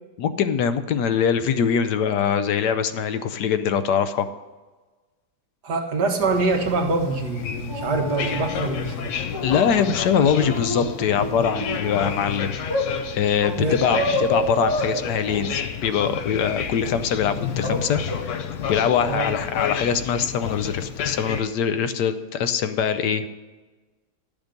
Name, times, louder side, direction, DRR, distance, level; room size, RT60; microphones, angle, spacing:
voice 1, 0.2-4.3 9.4-12.5 13.2-18.4 18.7-23.3, left 7 dB, 85° left, 11 dB, 1.3 m, -23 dB
voice 2, 5.6-9.1 13.6-13.8 19.1-19.3, right 3 dB, 80° right, 3 dB, 1.9 m, -24 dB
sound 1, 6.2-21.4, left 7 dB, 60° left, 0.9 m, -31 dB
sound 2, 7.7-8.7 9.3-9.8 10.3-12.1 12.7-12.9 13.8-14.9 17.6-17.8 18.1-18.2, equal, 15° right, 1.7 m, -28 dB
11.5 x 7.1 x 5.2 m, 1.3 s
omnidirectional pair, 1.7 m